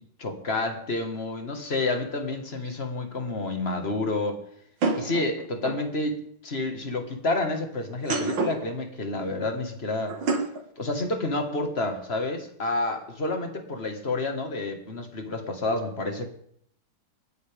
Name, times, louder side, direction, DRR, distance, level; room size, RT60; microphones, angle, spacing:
voice 1, 0.2-4.4 4.9-10.2 10.8-16.2, left 2 dB, 30° left, 5 dB, 1.7 m, -29 dB
sound 1, 2.7-2.8 4.8-5.9 7.9-8.7 10.1-10.6, right 4 dB, 70° right, 2.6 m, -28 dB
28.0 x 9.6 x 3.5 m, 0.67 s
omnidirectional pair, 2.3 m